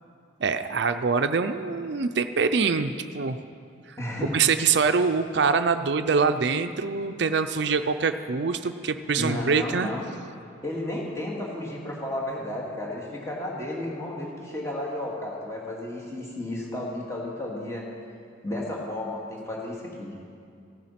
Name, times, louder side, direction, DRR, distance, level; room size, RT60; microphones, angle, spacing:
voice 1, 0.4-3.4 3.9-9.9, right 5 dB, 60° right, 9 dB, 0.5 m, -24 dB
voice 2, 4.0-4.4 9.2-10.0 10.6-17.8 18.4-20.1, left 1 dB, 15° left, -3 dB, 2.2 m, -33 dB
16.0 x 9.3 x 5.8 m, 2.4 s
head